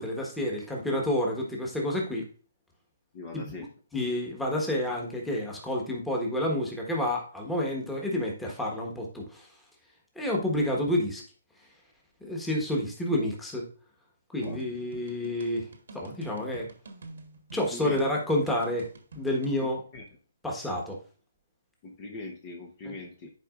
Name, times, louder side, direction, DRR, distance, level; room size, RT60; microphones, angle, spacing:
voice 1, 0.0-2.3 3.3-3.6 3.9-9.5 10.1-11.2 12.2-13.7 14.3-15.7 15.9-16.7 17.5-18.9 19.1-19.8 20.4-21.0 22.8-22.9, left 1 dB, 5° left, -2 dB, 1.4 m, -29 dB
voice 2, 3.1-3.7 14.4-14.6 17.7-18.0 19.6-20.0 21.8-23.3, left 3 dB, 35° left, 1 dB, 1.0 m, -41 dB
sound 1, 14.4-19.6, right 2 dB, 70° right, 1.3 m, -47 dB
11.0 x 4.7 x 2.5 m, 0.41 s
hypercardioid pair, 150°, 0 cm